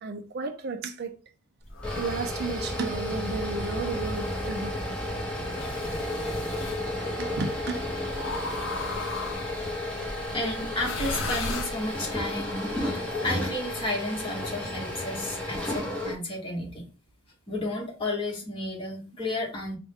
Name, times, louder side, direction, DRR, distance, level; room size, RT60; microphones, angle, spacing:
voice 1, 0.0-1.1 2.0-5.0 7.2-7.8, right 4 dB, 50° right, 0.4 m, -33 dB
sound 1, 1.6-16.2, left 1 dB, 5° left, 0.8 m, -32 dB
sound 2, 1.7-2.4 3.4-4.6 5.5-6.8 8.1-9.7 10.8-12.2, left 3 dB, 60° left, 0.6 m, -36 dB
voice 2, 10.2-16.8 17.5-19.8, left 1 dB, 25° left, 1.3 m, -32 dB
4.4 x 2.2 x 3.5 m
head